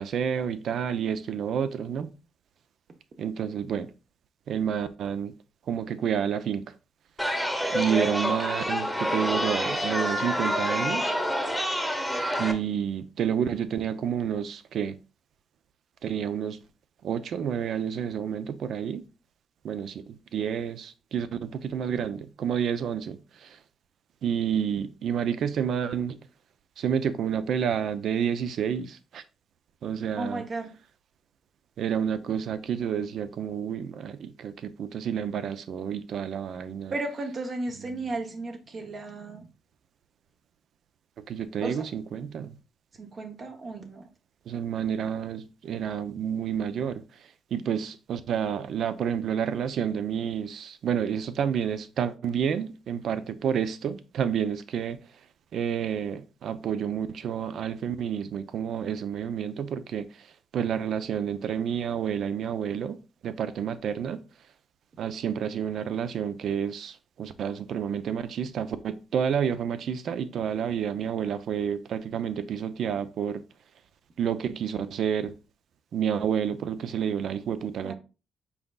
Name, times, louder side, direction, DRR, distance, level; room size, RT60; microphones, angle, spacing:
voice 1, 0.0-2.1 3.2-3.9 4.5-5.3 5.7-6.6 7.7-11.1 12.4-14.9 16.0-16.6 17.0-19.0 19.6-23.2 23.4-23.5 24.2-26.2 26.8-29.2 29.8-30.4 31.8-36.9 41.3-42.5 44.5-47.0 47.5-55.0 55.5-60.1 60.5-63.0 63.2-64.2 65.0-73.4 74.2-75.3 75.9-77.9, right 8 dB, 65° right, 0.5 m, -29 dB
Chatter, 7.2-12.5, equal, ahead, 1.0 m, -27 dB
voice 2, 30.2-30.7 36.9-39.5 41.6-41.9 43.0-44.1 77.8-77.9, right 2 dB, 45° right, 0.8 m, -34 dB
5.6 x 4.0 x 2.3 m
cardioid pair, 90°, 0 cm